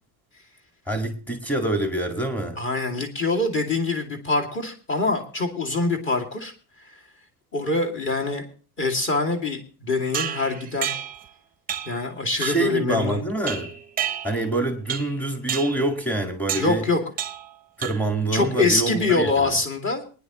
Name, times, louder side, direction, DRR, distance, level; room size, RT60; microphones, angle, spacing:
voice 1, 0.9-2.6 12.4-13.7 14.2-16.8 17.8-19.6, right 2 dB, 5° left, 4 dB, 1.9 m, -26 dB
voice 2, 2.6-6.5 6.8-6.9 7.5-8.4 8.8-10.9 11.9-13.2 16.5-17.0 18.3-20.0, left 3 dB, 25° left, 3 dB, 2.4 m, -24 dB
sound 1, 10.1-11.3 11.7-12.0 12.4-12.8 13.5-14.5 14.9-15.2 15.5-15.8 16.5-16.8 17.2-17.5 17.8-18.2, right 9 dB, 20° right, 0.8 m, -30 dB
22.5 x 10.0 x 3.0 m, 0.38 s
cardioid pair, 165°, 45 cm